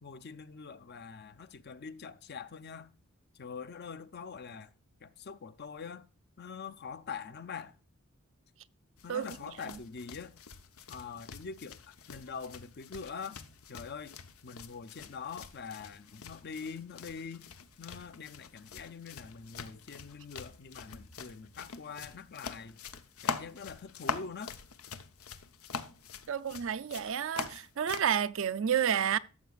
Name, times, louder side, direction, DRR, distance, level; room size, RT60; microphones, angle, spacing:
voice 1, 0.0-2.9 3.3-4.7 5.0-6.1 6.4-7.7 9.0-10.3 10.9-11.8 12.1-13.4 13.7-14.2 14.4-17.5 17.8-22.8 23.2-24.5, left 5 dB, 50° left, 0.6 m, -44 dB
sound 1, 9.0-28.1, left 5 dB, 90° left, 0.8 m, -44 dB
voice 2, 26.3-29.2, right 8 dB, 65° right, 0.5 m, -30 dB
14.0 x 7.0 x 2.4 m
head